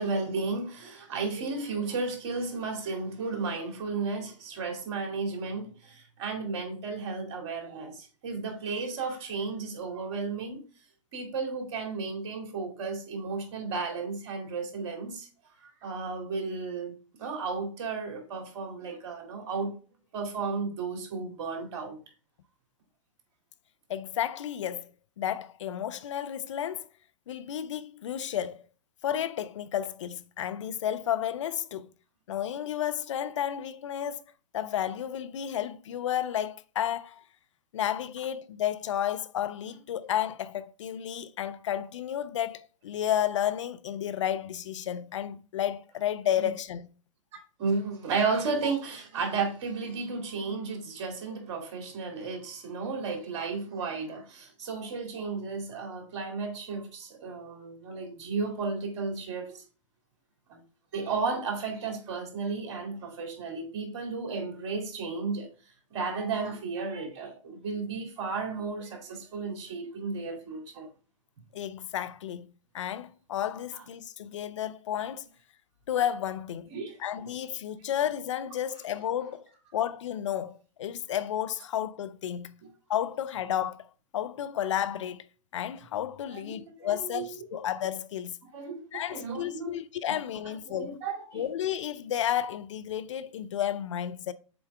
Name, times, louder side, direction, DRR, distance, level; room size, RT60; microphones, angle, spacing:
voice 1, 0.0-10.6 11.1-15.3 15.6-19.7 20.1-22.0 46.4-46.5 47.6-59.6 60.5-60.6 60.9-65.5 65.9-70.9 76.7-77.0 86.3-87.4 88.5-89.8 90.7-91.4, right 4 dB, 55° right, 2.3 m, -33 dB
voice 2, 23.9-24.9 25.2-26.9 27.3-28.7 29.0-31.9 32.3-34.2 34.5-37.2 37.7-46.9 71.5-72.5 72.7-75.2 75.9-76.7 77.0-79.5 79.7-82.5 82.9-83.9 84.1-85.3 85.5-88.4 88.9-91.0 91.3-94.3, left 10 dB, 65° left, 0.6 m, -32 dB
6.9 x 4.5 x 3.3 m
hypercardioid pair, 115°, 17 cm